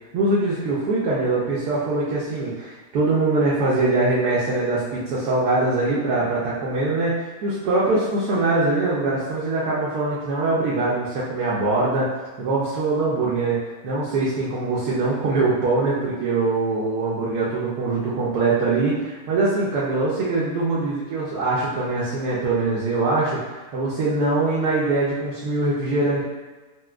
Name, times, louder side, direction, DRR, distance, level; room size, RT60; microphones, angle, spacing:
voice 1, 0.1-12.1 12.4-13.6 13.8-26.2, right 2 dB, 75° right, -7 dB, 1.1 m, -23 dB
4.2 x 2.2 x 2.3 m, 1.2 s
omnidirectional pair, 1.8 m